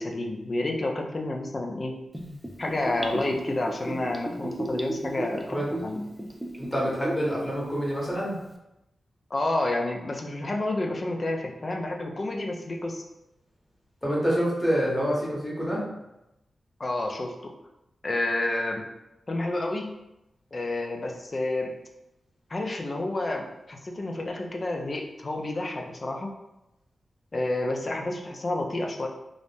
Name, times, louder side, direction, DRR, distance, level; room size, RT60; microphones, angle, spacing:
voice 1, 0.0-2.0 2.6-6.0 9.3-13.0 16.8-17.5 18.0-18.8 19.3-19.9 20.5-21.8 22.5-26.3 27.3-29.1, left 2 dB, 45° left, 2 dB, 0.4 m, -29 dB
Gurgling / Bathtub (filling or washing), 2.1-7.3 7.6-7.7, right 1 dB, 10° right, 0.5 m, -34 dB
voice 2, 6.6-8.4 14.0-15.8, equal, 15° left, -5 dB, 1.3 m, -27 dB
2.5 x 2.1 x 3.3 m, 0.91 s
cardioid pair, 45°, 0 cm